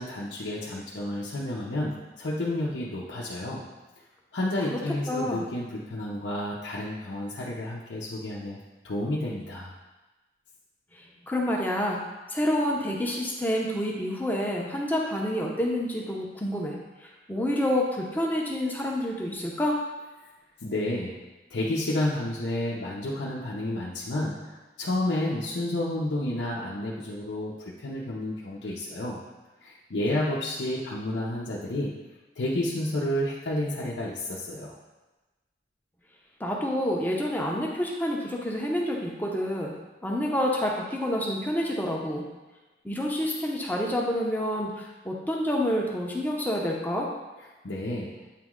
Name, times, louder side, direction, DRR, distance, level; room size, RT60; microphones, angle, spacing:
voice 1, 0.0-3.7 4.3-8.6 8.8-9.7 20.6-21.2 21.5-29.2 29.6-31.9 32.4-34.8 47.6-48.1, left 1 dB, 80° left, -6 dB, 0.7 m, -30 dB
voice 2, 5.1-5.5 11.3-12.0 12.3-16.8 17.3-19.8 36.4-39.7 40.0-42.2 42.8-47.1, left 1 dB, 10° left, -2 dB, 0.7 m, -28 dB
8.3 x 3.1 x 3.6 m, 1.1 s
head